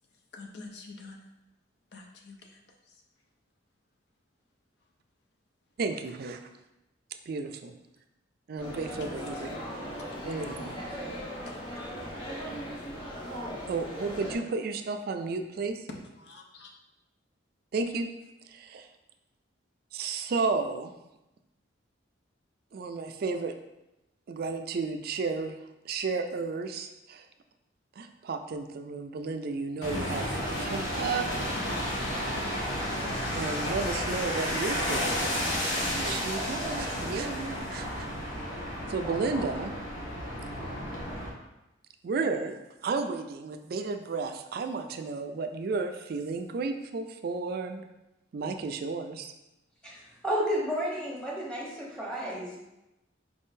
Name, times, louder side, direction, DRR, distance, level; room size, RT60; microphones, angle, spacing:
voice 1, 0.3-1.2 1.9-2.4 10.9-11.1 15.9-16.7, left 3 dB, 60° left, 1 dB, 0.6 m, -45 dB
voice 2, 5.8-6.4 7.3-7.7 8.5-9.5 10.2-10.7 13.7-15.8 17.7-18.1 18.4-18.9 19.9-20.9 22.7-23.5 24.3-25.6 25.8-27.3 28.0-31.3 33.3-38.1 38.9-39.7 42.0-42.6 42.8-47.9 48.3-49.3, right 4 dB, 50° right, 7 dB, 0.3 m, -33 dB
sound 1, 8.6-14.3, equal, 25° left, 1.3 m, -38 dB
sound 2, 29.8-41.3, equal, 85° left, 1.1 m, -32 dB
voice 3, 49.8-52.6, equal, 5° left, -5 dB, 1.0 m, -32 dB
4.8 x 3.6 x 2.6 m, 0.94 s
head